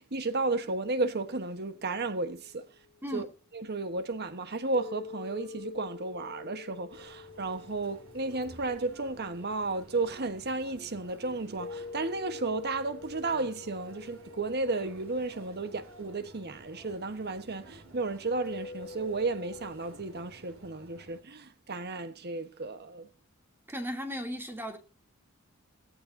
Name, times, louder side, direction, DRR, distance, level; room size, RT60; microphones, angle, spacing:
voice 1, 0.0-2.6 3.1-3.3 3.5-23.1, right 3 dB, 50° right, 1.3 m, -33 dB
sound 1, 1.7-3.3 4.7-10.2 11.6-17.0 18.4-19.7, left 4 dB, 50° left, 1.3 m, -47 dB
Chatter, 6.9-21.2, right 2 dB, 75° right, 6.0 m, -53 dB
voice 2, 23.7-24.8, equal, 10° right, 3.0 m, -36 dB
17.5 x 15.0 x 2.8 m
head